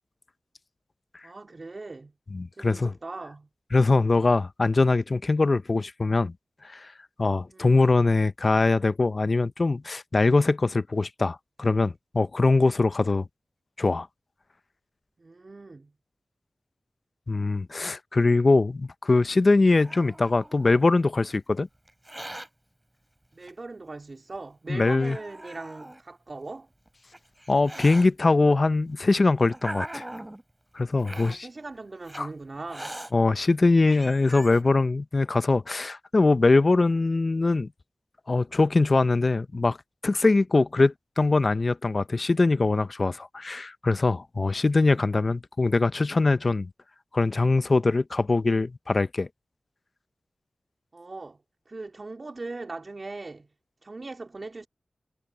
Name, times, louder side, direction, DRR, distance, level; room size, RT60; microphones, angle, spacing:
voice 1, 1.2-2.1 2.6-3.5 4.1-4.3 7.5-7.7 15.2-15.9 23.3-26.7 31.1-32.9 50.9-51.4 51.7-53.5 53.8-54.7, right 3 dB, 50° right, 2.5 m, -40 dB
voice 2, 2.3-2.9 3.7-6.3 6.7-6.9 7.2-13.3 13.8-14.1 17.3-21.7 24.7-25.2 27.5-30.0 30.7-31.5 32.2-32.3 33.1-37.7 38.3-39.8 40.0-46.7 47.1-49.3, left 3 dB, 50° left, 0.7 m, -22 dB
Hiss, 19.3-20.9 21.9-22.5 23.4-23.5 24.3-24.4 25.0-26.0 26.9-28.1 28.9-30.4 31.0-31.4 32.0-32.2 32.7-33.1 33.6-33.7 33.9-34.6, right 1 dB, 20° right, 6.6 m, -40 dB
cardioid pair, 45°, 0 cm